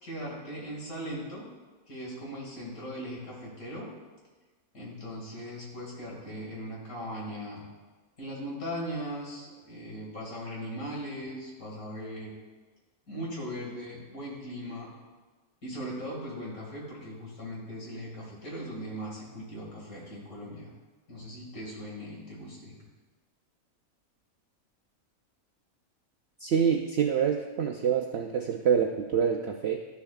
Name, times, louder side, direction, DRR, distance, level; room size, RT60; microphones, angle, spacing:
voice 1, 0.0-1.5 1.9-3.9 4.7-7.6 8.2-12.3 13.1-14.9 15.6-20.7 21.1-22.7, equal, 70° left, -3 dB, 2.6 m, -39 dB
voice 2, 26.4-29.8, right 7 dB, 70° right, 3 dB, 0.6 m, -26 dB
12.5 x 7.0 x 2.3 m, 1.3 s
omnidirectional pair, 1.6 m